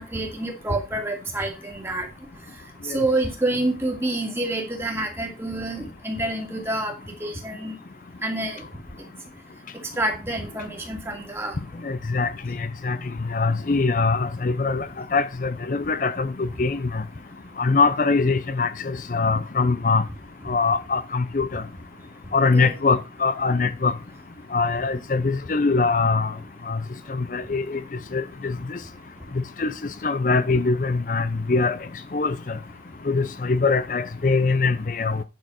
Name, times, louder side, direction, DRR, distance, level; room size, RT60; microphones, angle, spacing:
voice 1, 0.0-2.1 2.9-6.9 7.2-7.7 8.2-8.6 10.0-11.6 22.5-22.8, right 2 dB, 15° right, 2.3 m, -27 dB
voice 2, 11.8-13.0 13.3-17.0 17.6-20.0 20.5-21.6 22.3-23.9 24.5-26.3 26.7-26.8 27.1-27.8 28.1-28.8 29.6-29.7 30.0-31.8 32.1-32.4 33.1-35.2, left 4 dB, 45° left, 0.5 m, -23 dB
10.5 x 4.4 x 6.3 m
head